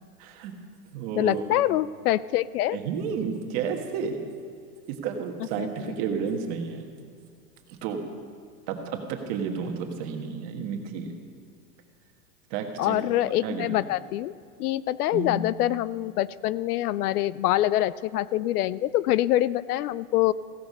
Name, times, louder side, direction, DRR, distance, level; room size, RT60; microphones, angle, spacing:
voice 1, 0.2-0.5 0.9-1.4 2.7-4.2 4.9-6.9 7.7-8.0 8.7-11.1 12.5-13.0 13.4-13.8 15.1-15.4, right 6 dB, 35° right, 4 dB, 1.4 m, -31 dB
voice 2, 1.2-2.8 5.6-5.7 12.8-14.3 14.6-20.3, left 14 dB, 80° left, 19 dB, 0.6 m, -25 dB
16.0 x 12.5 x 5.5 m, 2.3 s
supercardioid pair, 165°, 45 cm